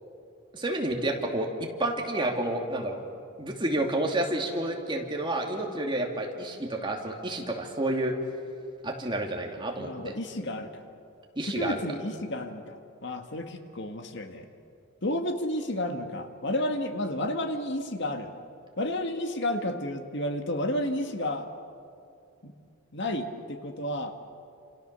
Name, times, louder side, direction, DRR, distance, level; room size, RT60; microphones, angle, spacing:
voice 1, 0.5-1.5 1.8-3.0 3.4-8.2 8.8-10.1 11.4-11.8, right 1 dB, 25° right, 1 dB, 2.7 m, -30 dB
voice 2, 9.8-10.8 11.4-14.5 15.0-18.3 18.8-21.5 22.4-22.5 22.9-24.1, left 1 dB, 55° left, 6 dB, 1.8 m, -31 dB
29.0 x 28.0 x 6.9 m, 2.5 s
head